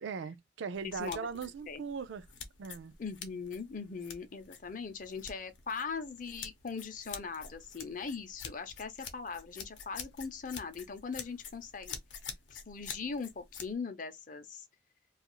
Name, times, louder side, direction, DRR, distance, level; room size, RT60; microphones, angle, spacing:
voice 1, 0.0-2.3 2.6-2.9, right 5 dB, 80° right, 0.4 m, -39 dB
sound 1, 0.7-13.7, left 6 dB, 85° left, 0.7 m, -48 dB
voice 2, 0.8-1.2 1.7-1.8 3.0-12.0 12.5-14.6, left 5 dB, 45° left, 0.5 m, -40 dB
2.4 x 2.4 x 2.9 m
head